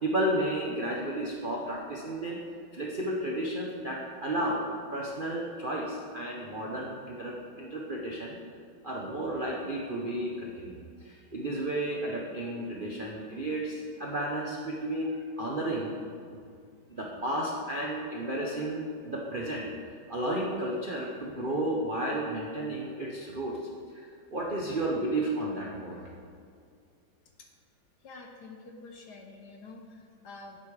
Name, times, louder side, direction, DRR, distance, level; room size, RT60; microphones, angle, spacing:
voice 1, 0.0-2.4 2.7-8.4 8.8-15.9 16.3-16.4 16.9-19.7 20.1-23.6 23.9-26.1, right 1 dB, 50° right, -3 dB, 0.6 m, -32 dB
voice 2, 28.0-30.6, left 3 dB, 60° left, 2 dB, 1.3 m, -47 dB
10.5 x 8.4 x 3.3 m, 2.3 s
omnidirectional pair, 2.2 m